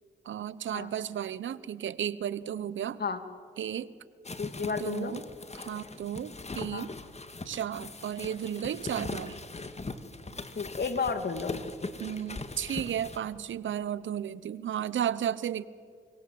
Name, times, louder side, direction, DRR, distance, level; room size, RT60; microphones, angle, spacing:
voice 1, 0.2-3.0 3.6-3.9 4.6-5.2 5.5-6.9 7.4-9.4 12.0-15.7, right 9 dB, 70° right, 18 dB, 1.0 m, -34 dB
sound 1, 4.2-13.2, left 3 dB, 35° left, 2.3 m, -41 dB
voice 2, 4.4-5.2 6.7-6.9 10.5-11.6, left 5 dB, 55° left, 8 dB, 2.8 m, -32 dB
28.5 x 25.5 x 7.9 m, 2.1 s
supercardioid pair, 45°, 20 cm